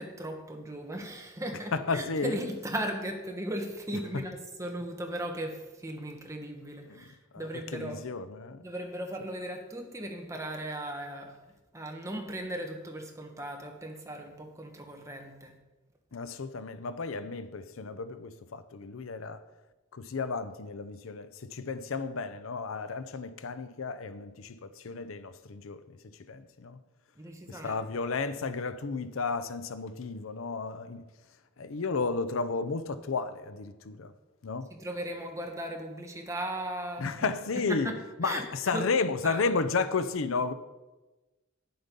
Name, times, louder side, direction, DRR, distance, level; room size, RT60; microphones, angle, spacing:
voice 1, 0.0-8.0 8.6-11.4 11.7-15.6 27.2-27.8 34.7-37.1 37.7-38.8 39.2-39.4, right 1 dB, 15° right, 1.3 m, -37 dB
voice 2, 1.7-2.4 6.9-7.0 7.3-8.6 16.1-19.4 19.9-25.8 26.3-26.8 27.5-31.0 31.6-34.1 34.4-34.7 37.0-37.9 38.2-40.5, left 4 dB, 80° left, 0.6 m, -33 dB
9.6 x 7.8 x 5.3 m
head